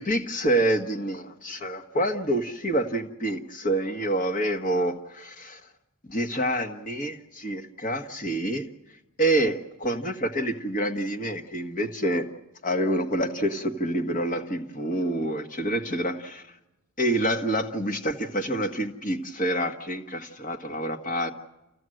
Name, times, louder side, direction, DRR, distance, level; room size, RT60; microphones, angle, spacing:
voice 1, 0.0-5.6 6.1-8.6 9.2-12.3 12.6-16.4 17.0-21.3, right 1 dB, 35° left, 6 dB, 1.4 m, -27 dB
29.0 x 15.5 x 7.8 m, 1.0 s
head